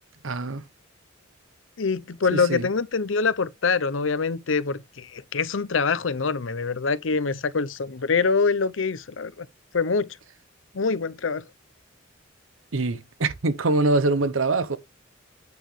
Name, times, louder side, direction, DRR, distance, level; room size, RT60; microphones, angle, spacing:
voice 1, 0.2-0.6 2.3-2.7 12.7-14.8, right 2 dB, 90° right, 0.8 m, -24 dB
voice 2, 1.8-9.5 9.7-10.1 10.7-11.4, left 4 dB, 70° left, 0.7 m, -25 dB
8.7 x 6.0 x 3.2 m
head